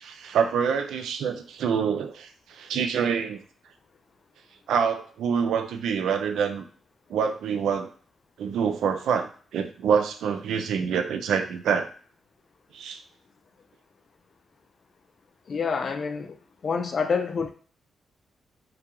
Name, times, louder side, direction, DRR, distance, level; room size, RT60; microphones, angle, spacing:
voice 1, 0.0-3.4 4.7-6.7 7.1-7.9 8.4-11.9 12.7-13.0, right 7 dB, 90° right, 0.3 m, -26 dB
voice 2, 15.5-16.4 16.6-17.5, left 5 dB, 55° left, 0.4 m, -27 dB
2.3 x 2.2 x 2.9 m
cardioid pair, 75°, 0 cm